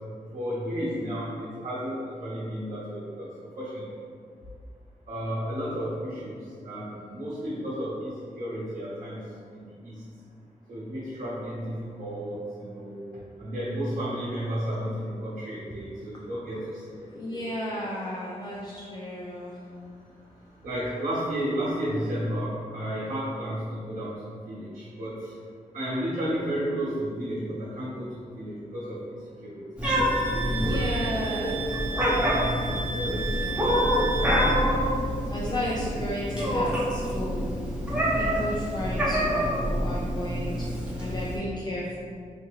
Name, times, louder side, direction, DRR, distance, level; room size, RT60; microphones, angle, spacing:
voice 1, 0.3-3.3 3.6-3.8 5.1-6.4 6.6-9.2 9.5-10.0 10.7-13.0 13.4-17.9 20.6-25.3 25.7-29.6 29.9-31.1 32.6-33.5 35.4-35.8, equal, 85° right, -11 dB, 1.0 m, -33 dB
voice 2, 17.1-19.6 30.5-31.6 33.1-33.8 35.3-37.5 38.2-40.7 41.0-42.0, left 1 dB, 30° left, -5 dB, 0.4 m, -33 dB
Meow, 29.8-41.4, equal, 10° right, 0.9 m, -27 dB
Wind instrument woodwind instrument, 29.8-34.6, right 3 dB, 50° right, 0.4 m, -34 dB
4.6 x 2.2 x 3.0 m, 2.2 s
wide cardioid pair, 95°, 14 cm